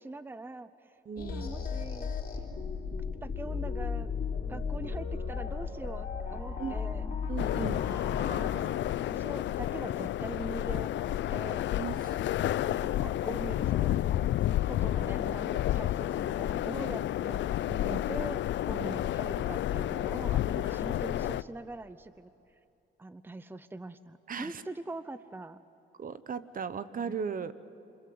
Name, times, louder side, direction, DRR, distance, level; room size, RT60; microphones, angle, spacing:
voice 1, 0.0-2.1 3.2-4.2 4.5-7.1 8.2-11.7 12.6-14.2 14.7-22.3 23.0-25.6 27.0-27.2, right 2 dB, 10° right, 13 dB, 0.8 m, -43 dB
voice 2, 1.1-1.5 6.6-6.7 7.3-7.8 11.8-12.2 17.9-18.1 18.7-19.0 20.5-20.8 24.3-24.6 26.0-27.5, right 6 dB, 45° right, 14 dB, 1.0 m, -37 dB
sound 1, 1.2-8.5, left 5 dB, 45° left, 4.0 m, -35 dB
sound 2, 7.4-21.4, left 13 dB, 70° left, 0.6 m, -30 dB
29.0 x 26.0 x 7.8 m, 2.7 s
cardioid pair, 90°, 20 cm